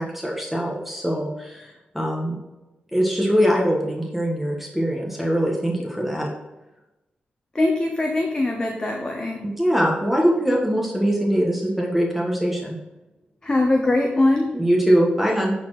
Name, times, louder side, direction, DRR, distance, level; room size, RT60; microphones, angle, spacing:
voice 1, 0.0-2.4 2.9-6.3 9.4-12.8 14.5-15.5, equal, 5° right, -2 dB, 1.5 m, -22 dB
voice 2, 7.5-9.4 13.4-14.5, left 2 dB, 25° left, 2 dB, 1.0 m, -21 dB
10.5 x 4.4 x 4.9 m, 1.0 s
wide cardioid pair, 100°, 3 cm